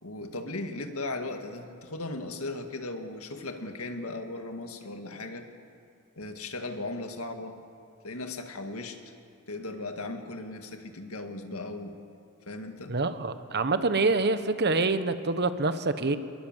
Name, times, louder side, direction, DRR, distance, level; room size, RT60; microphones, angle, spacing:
voice 1, 0.0-5.5 6.2-7.6 8.0-9.0 9.5-12.0 12.5-12.9, left 2 dB, 70° left, 5 dB, 2.0 m, -37 dB
voice 2, 12.9-16.2, right 3 dB, 50° right, 11 dB, 1.2 m, -26 dB
26.5 x 20.5 x 7.5 m, 2.4 s
head